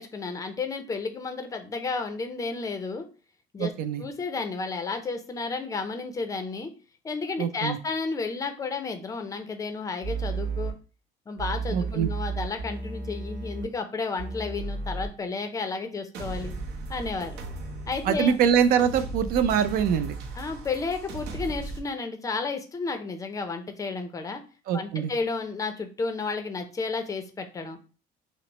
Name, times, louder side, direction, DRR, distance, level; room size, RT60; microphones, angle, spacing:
voice 1, 0.0-3.1 3.5-3.7 4.0-6.7 7.0-10.7 11.3-16.5 16.9-17.4 17.9-18.4 20.4-24.4 24.7-27.8, left 4 dB, 20° left, 7 dB, 0.5 m, -32 dB
voice 2, 3.6-4.0 7.4-7.8 11.7-12.1 18.1-20.1 24.7-25.1, right 8 dB, 55° right, 11 dB, 0.4 m, -24 dB
sound 1, 10.0-10.7 11.4-13.6 14.2-15.1, right 4 dB, 90° right, 1.3 m, -32 dB
sound 2, 16.1-21.8, right 2 dB, 75° right, 0.8 m, -37 dB
5.9 x 2.0 x 2.9 m, 0.34 s
cardioid pair, 160°, 18 cm